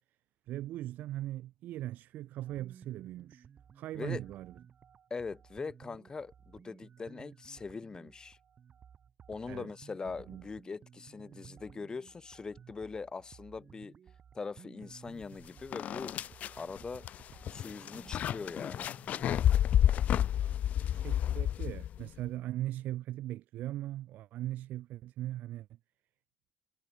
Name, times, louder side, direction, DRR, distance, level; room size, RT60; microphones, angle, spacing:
voice 1, 0.5-3.5 3.7-4.5 9.5-9.7 10.3-10.4 19.8-20.0 20.4-25.7, right 14 dB, 80° right, 3.7 m, -39 dB
sound 1, 2.5-19.4, right 8 dB, 45° right, 4.2 m, -56 dB
voice 2, 5.1-8.4 9.3-13.9 14.3-16.2 16.6-17.1 17.5-18.9, left 4 dB, 25° left, 2.4 m, -42 dB
sound 2, 15.2-15.3 15.7-22.1, left 10 dB, 60° left, 0.4 m, -30 dB
cardioid pair, 115°, 3 cm